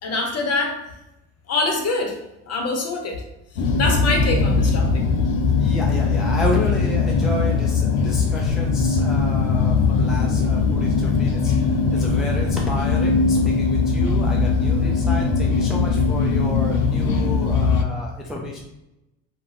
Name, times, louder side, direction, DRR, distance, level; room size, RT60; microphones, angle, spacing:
voice 1, 0.0-0.8 1.5-2.2 2.5-3.2 3.8-5.0, left 3 dB, 40° left, 2 dB, 0.8 m, -24 dB
sound 1, 3.5-17.8, left 4 dB, 85° left, 0.5 m, -20 dB
voice 2, 5.6-18.6, left 1 dB, ahead, -2 dB, 0.4 m, -31 dB
2.4 x 2.1 x 3.3 m, 0.92 s
hypercardioid pair, 75°, 39 cm